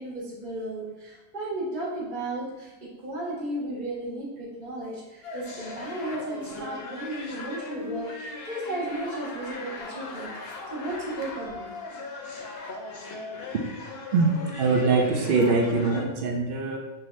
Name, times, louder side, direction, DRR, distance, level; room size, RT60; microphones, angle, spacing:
voice 1, 0.0-10.3 10.7-11.7, right 1 dB, 35° right, -6 dB, 1.2 m, -34 dB
sound 1, 5.2-16.1, left 3 dB, 55° left, 0.7 m, -39 dB
voice 2, 14.1-16.8, right 3 dB, 80° right, 2 dB, 0.5 m, -23 dB
5.6 x 2.8 x 3.1 m, 1.1 s
omnidirectional pair, 1.6 m